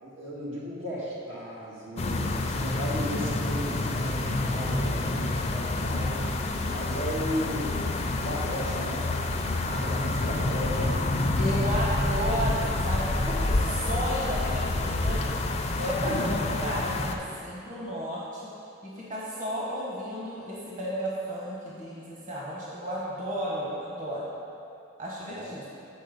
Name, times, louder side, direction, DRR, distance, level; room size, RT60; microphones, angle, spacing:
voice 1, 0.0-6.2 6.7-7.9 8.2-9.1 9.6-11.0 13.3-13.4 13.7-13.8 16.0-16.3 25.2-25.5, equal, 85° right, -6 dB, 1.9 m, -35 dB
sound 1, 2.0-17.2, left 2 dB, 35° left, 0.5 m, -28 dB
voice 2, 11.4-13.5 13.9-15.2 15.8-18.5 18.8-24.3 25.0-25.7, equal, 45° right, -6 dB, 1.2 m, -33 dB
7.6 x 4.6 x 5.3 m, 2.6 s
head